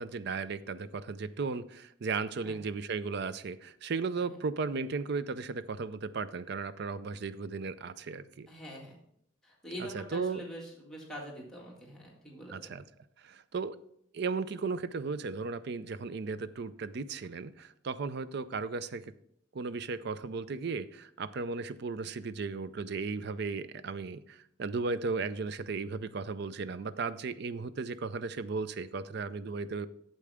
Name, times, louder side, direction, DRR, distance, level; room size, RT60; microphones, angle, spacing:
voice 1, 0.0-8.5 9.8-10.4 12.5-12.8 13.2-13.8 14.1-19.1 19.5-29.9, right 4 dB, 60° right, 14 dB, 0.4 m, -35 dB
voice 2, 8.5-9.0 9.4-12.8, equal, 5° left, -4 dB, 1.9 m, -44 dB
8.4 x 7.6 x 3.5 m, 0.73 s
head